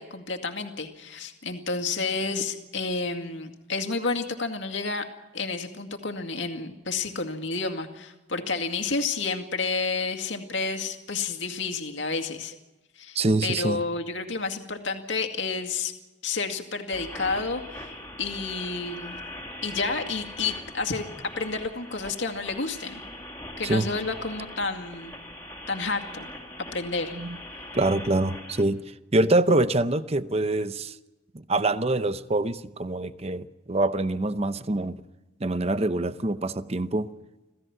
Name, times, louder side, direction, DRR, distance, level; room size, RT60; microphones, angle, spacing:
voice 1, 0.0-5.1 5.3-12.5 13.0-15.9 16.2-17.9 18.2-19.2 19.6-23.0 23.6-25.2 25.7-26.3 26.7-27.1, left 4 dB, 70° left, 2.2 m, -30 dB
voice 2, 13.1-13.8 23.6-23.9 27.1-27.4 27.7-28.8 29.1-30.9 31.5-35.0 35.4-37.1, right 2 dB, 30° right, 0.8 m, -25 dB
sound 1, 16.9-28.6, left 1 dB, 15° left, 2.9 m, -41 dB
27.0 x 16.0 x 6.0 m
head